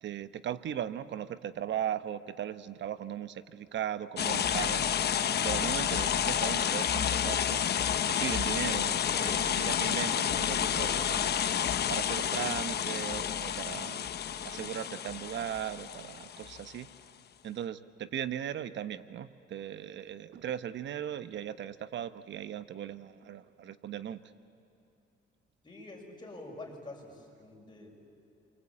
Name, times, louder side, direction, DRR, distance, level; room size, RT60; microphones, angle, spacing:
voice 1, 0.0-4.9 5.4-7.6 8.1-11.5 11.9-14.1 14.4-16.9 17.4-24.2, right 10 dB, 65° right, 13 dB, 1.0 m, -38 dB
sound 1, 4.2-16.7, left 9 dB, 55° left, 1.0 m, -30 dB
voice 2, 25.6-27.9, left 2 dB, 20° left, 0 dB, 6.4 m, -46 dB
27.5 x 24.5 x 8.6 m, 2.7 s
cardioid pair, 90°, 20 cm